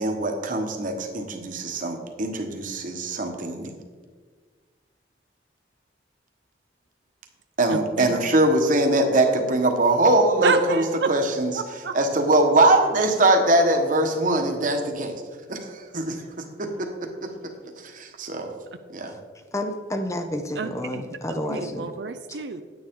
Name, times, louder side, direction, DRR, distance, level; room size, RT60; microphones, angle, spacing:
voice 1, 0.0-3.7 7.6-10.8 11.1-11.5 11.9-15.2 15.5-17.5 17.8-18.5 18.9-19.1, right 2 dB, 45° right, 4 dB, 1.3 m, -22 dB
voice 2, 7.7-8.2 10.4-11.1 11.5-11.9 20.5-22.6, right 5 dB, 65° right, 8 dB, 0.5 m, -29 dB
voice 3, 19.5-21.8, left 1 dB, 15° left, 6 dB, 0.6 m, -29 dB
9.8 x 9.5 x 3.7 m, 1.5 s
head